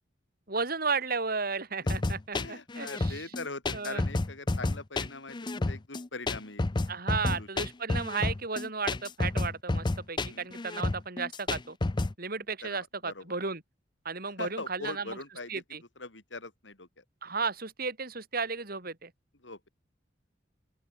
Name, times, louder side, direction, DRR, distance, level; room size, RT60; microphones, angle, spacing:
voice 1, 0.5-3.3 3.7-4.1 6.9-11.8 12.2-13.6 14.1-15.2 15.5-15.8 17.2-19.1, right 4 dB, 55° right, 3.6 m, -34 dB
sound 1, 1.9-12.1, left 2 dB, 25° left, 0.5 m, -30 dB
voice 2, 2.3-6.7 7.3-7.5 10.3-10.5 12.6-13.2 14.4-15.6 16.0-17.0 19.4-19.7, left 3 dB, 80° left, 4.8 m, -42 dB
open air
head